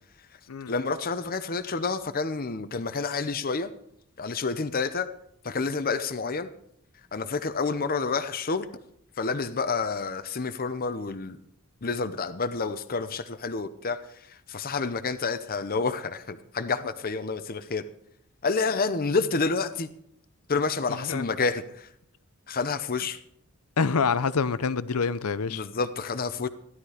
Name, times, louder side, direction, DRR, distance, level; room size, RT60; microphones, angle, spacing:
voice 1, 0.7-3.7 4.2-5.1 5.4-6.5 7.1-8.7 9.2-11.4 11.8-17.8 18.4-19.9 20.5-21.9 22.5-23.2 25.5-26.5, left 4 dB, 40° left, 0.7 m, -29 dB
voice 2, 20.9-21.2 23.8-25.6, left 5 dB, 80° left, 0.7 m, -26 dB
16.0 x 11.5 x 5.0 m
head